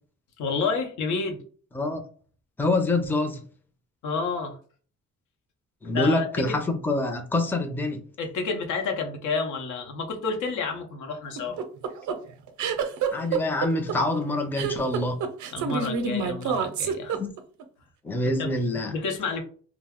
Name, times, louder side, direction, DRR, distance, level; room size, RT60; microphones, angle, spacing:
voice 1, 0.4-1.4 4.0-4.6 5.8-6.3 8.2-11.6 15.5-17.1 18.2-19.4, left 4 dB, 75° left, 0.8 m, -30 dB
voice 2, 2.6-3.4 5.8-8.0 13.1-15.2 17.1-17.3 18.0-18.9, left 2 dB, 5° left, 0.5 m, -26 dB
sound 1, 11.4-17.6, right 6 dB, 75° right, 0.6 m, -27 dB
2.3 x 2.0 x 3.5 m
cardioid pair, 90°, 30 cm